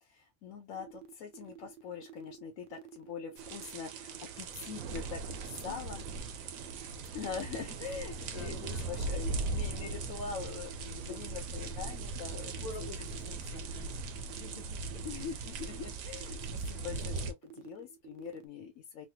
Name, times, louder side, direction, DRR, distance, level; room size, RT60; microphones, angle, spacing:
voice 1, 0.0-6.0 7.1-12.7 13.3-13.6 15.0-19.1, left 6 dB, 80° left, 1.0 m, -43 dB
sound 1, 0.7-18.4, right 11 dB, 60° right, 0.5 m, -51 dB
sound 2, 3.4-17.3, right 3 dB, 90° right, 1.0 m, -39 dB
voice 2, 6.7-7.1 8.3-8.7 9.1-9.2 10.7-11.2 12.6-13.9 14.3-15.1, left 2 dB, 40° left, 0.7 m, -49 dB
3.2 x 2.3 x 2.7 m
omnidirectional pair, 1.4 m